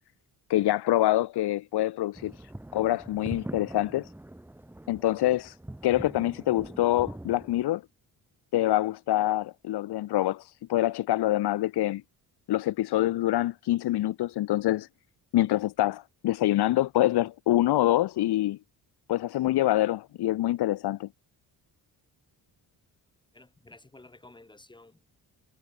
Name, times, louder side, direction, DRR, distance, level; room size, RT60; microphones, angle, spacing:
voice 1, 0.5-4.1 4.9-5.6 5.8-7.8 8.5-12.0 12.5-14.9 15.3-18.6 19.1-21.1, left 14 dB, 80° left, 1.3 m, -26 dB
sound 1, 2.1-7.7, right 1 dB, 5° right, 2.0 m, -43 dB
voice 2, 23.3-25.0, left 2 dB, 10° left, 4.7 m, -52 dB
cardioid pair, 170°, 39 cm